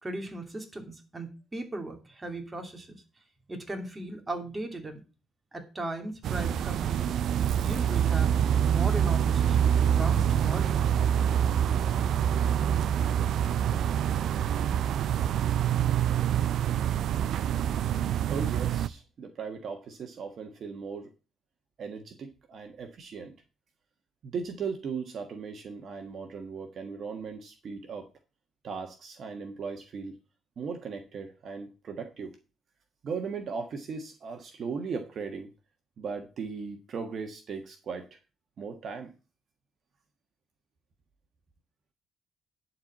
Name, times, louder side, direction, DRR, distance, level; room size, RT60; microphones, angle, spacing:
voice 1, 0.0-3.0 3.5-5.0 5.5-7.1 7.6-8.4 8.7-10.8, right 2 dB, 20° right, 4 dB, 2.8 m, -37 dB
sound 1, 6.2-18.9, right 9 dB, 75° right, 0.5 m, -26 dB
voice 2, 18.3-21.1 21.8-23.3 24.2-28.1 28.6-30.2 30.6-32.4 33.0-35.5 36.0-38.2 38.6-39.1, right 5 dB, 60° right, 5 dB, 1.5 m, -37 dB
11.0 x 4.5 x 7.4 m, 0.32 s
cardioid pair, 90°, 0 cm